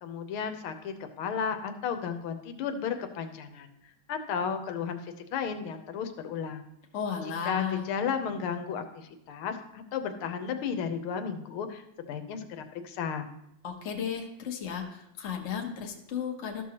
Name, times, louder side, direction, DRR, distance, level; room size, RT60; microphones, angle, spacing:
voice 1, 0.0-3.7 4.1-6.6 7.2-13.3, left 7 dB, 90° left, 7 dB, 1.6 m, -34 dB
voice 2, 6.9-7.8 13.6-16.6, left 7 dB, 50° left, 1 dB, 0.9 m, -34 dB
13.0 x 6.1 x 2.9 m, 0.79 s
omnidirectional pair, 2.3 m